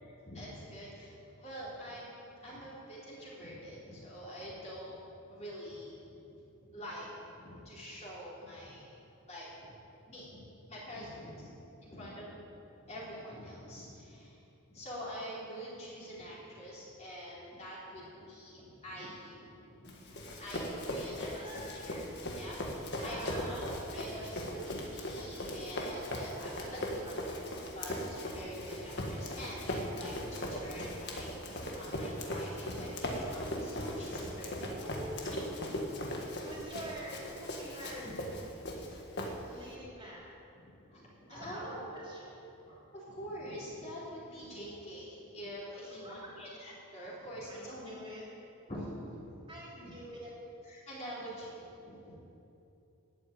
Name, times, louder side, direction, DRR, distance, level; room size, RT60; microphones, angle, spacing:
voice 1, 0.0-2.2 2.4-5.0 5.3-6.2 6.7-9.0 9.3-9.7 10.1-10.4 10.7-11.5 11.8-12.3 12.8-14.4 14.7-26.8 27.7-34.5 34.8-34.9 39.3-39.6 40.7-47.9 48.7-49.5 49.8-49.9 50.7-52.1, equal, 30° left, -7 dB, 3.8 m, -45 dB
voice 2, 10.9-11.3 11.9-12.2 21.2-21.9 22.8-23.6 26.6-27.7 34.6-35.4 36.2-38.1 39.4-40.4 41.3-42.6 45.7-46.4 47.2-48.3 49.5-50.3, equal, 25° right, -5 dB, 3.3 m, -48 dB
Run, 19.9-39.7, left 1 dB, 50° left, 1.7 m, -39 dB
13.0 x 8.6 x 9.0 m, 2.9 s
head